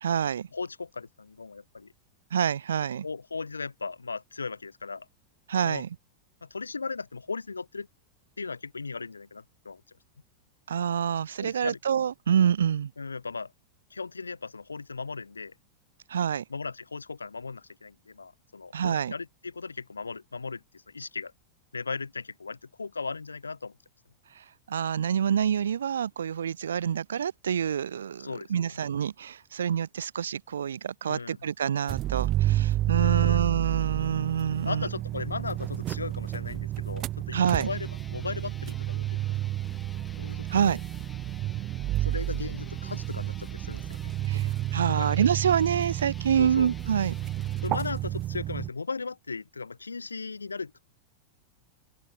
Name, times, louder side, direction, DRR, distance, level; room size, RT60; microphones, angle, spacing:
voice 1, 0.0-0.5 2.3-3.1 5.5-5.9 10.7-12.9 16.1-16.4 18.7-19.1 24.7-34.9 37.3-37.7 40.5-40.8 44.3-47.1, right 8 dB, 65° right, 0.7 m, -27 dB
voice 2, 0.5-1.9 3.0-5.1 5.6-5.8 6.4-7.9 8.4-9.8 11.4-11.8 13.0-13.5 13.9-15.6 16.5-21.3 21.7-23.8 28.2-28.8 31.1-31.4 33.0-33.4 34.6-39.2 40.2-40.8 42.0-44.5 44.9-45.2 46.4-46.7 47.6-50.8, left 4 dB, 75° left, 2.3 m, -37 dB
sound 1, 31.9-48.7, right 14 dB, 35° right, 0.4 m, -30 dB
sound 2, 37.3-47.7, left 4 dB, 15° left, 5.8 m, -50 dB
open air
figure-of-eight pair, 90°, 0 cm